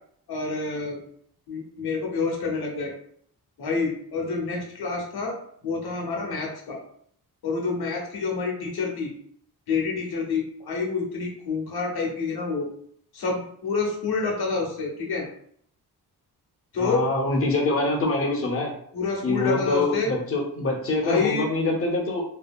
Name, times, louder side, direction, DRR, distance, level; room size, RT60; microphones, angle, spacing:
voice 1, 0.3-1.0 1.5-2.9 3.6-5.4 5.6-6.8 7.4-9.1 9.7-12.7 13.1-15.3 16.7-17.1 18.9-20.1 21.0-21.5, left 4 dB, 75° left, 0 dB, 0.8 m, -28 dB
voice 2, 16.8-18.7 19.2-22.2, left 2 dB, 35° left, 0 dB, 0.6 m, -25 dB
2.7 x 2.7 x 2.2 m, 0.64 s
wide cardioid pair, 160°, 39 cm